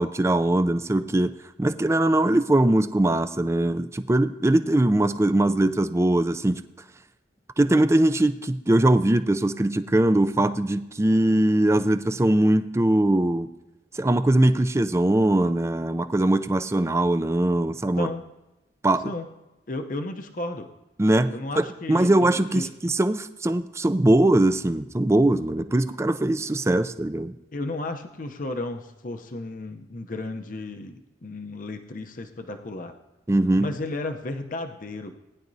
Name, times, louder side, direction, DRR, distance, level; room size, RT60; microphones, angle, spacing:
voice 1, 0.0-6.6 7.6-13.5 13.9-18.1 18.8-19.1 21.0-27.3 33.3-33.7, right 1 dB, 15° right, 11 dB, 0.4 m, -21 dB
voice 2, 19.7-20.7 21.3-22.7 27.5-32.9 33.6-35.1, left 2 dB, 50° left, 6 dB, 0.7 m, -33 dB
19.0 x 10.5 x 2.7 m, 1.0 s
head